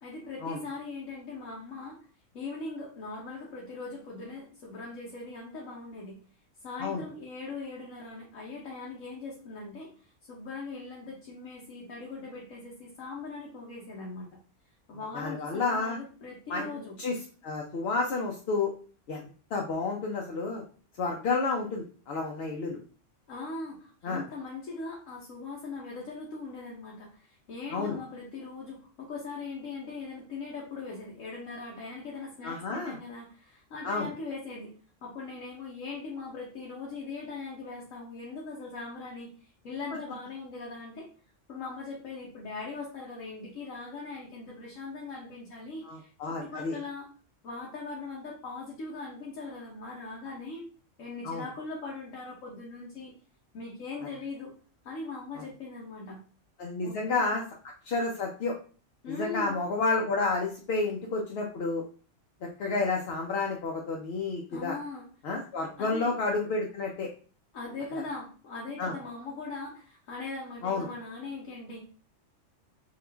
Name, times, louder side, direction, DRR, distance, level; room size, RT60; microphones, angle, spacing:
voice 1, 0.0-2.0 2.3-6.2 6.6-14.4 14.9-17.0 23.3-34.7 35.0-41.1 41.5-47.1 47.4-50.7 51.0-53.1 53.5-54.5 54.8-56.2 56.8-57.4 59.0-59.5 64.5-65.0 65.8-66.1 67.5-71.8, left 3 dB, 85° left, -4 dB, 1.2 m, -40 dB
voice 2, 15.1-16.0 16.5-17.2 17.4-18.7 19.1-20.6 21.0-22.8 24.0-24.2 27.7-28.0 32.4-33.0 33.8-34.1 45.9-46.8 51.2-51.4 55.4-55.5 56.6-57.4 57.8-58.5 59.1-61.8 62.6-64.8 65.2-67.1 68.8-68.9 70.6-70.9, left 3 dB, 60° left, 0 dB, 0.7 m, -30 dB
3.6 x 2.4 x 3.3 m, 0.40 s
omnidirectional pair, 1.3 m